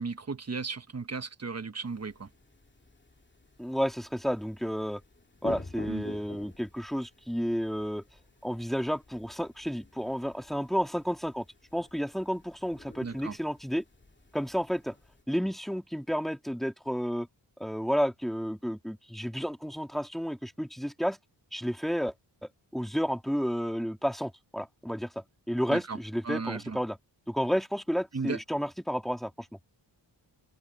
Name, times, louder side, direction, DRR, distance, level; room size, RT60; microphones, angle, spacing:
voice 1, 0.0-2.3 5.9-6.1 13.0-13.4 25.7-26.0 26.2-26.8 28.1-28.4, right 4 dB, 35° right, 1.4 m, -35 dB
sound 1, 1.8-15.2, left 3 dB, 25° left, 2.6 m, -49 dB
voice 2, 3.6-5.0 5.4-8.0 8.4-11.4 11.7-13.8 14.3-14.9 15.3-17.3 17.6-21.2 21.5-22.1 22.7-27.0 27.3-29.5, equal, ahead, 3.1 m, -31 dB
open air
cardioid pair, 60°, 46 cm